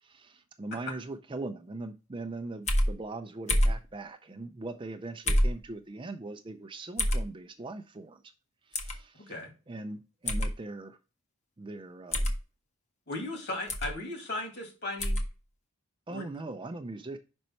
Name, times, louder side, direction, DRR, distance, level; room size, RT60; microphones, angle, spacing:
voice 1, 0.0-8.2 8.7-9.3 9.7-11.0 11.6-12.3 16.1-17.2, right 2 dB, 20° right, 0.4 m, -40 dB
sound 1, 2.7-2.9 3.5-3.8 5.3-5.6 7.0-7.2 8.7-9.0 10.3-10.5 12.1-12.4 13.7-13.9 15.0-15.3, equal, 30° left, 0.8 m, -26 dB
voice 2, 13.1-15.2 16.1-16.4, left 2 dB, 50° left, 2.2 m, -36 dB
5.4 x 5.2 x 4.4 m
head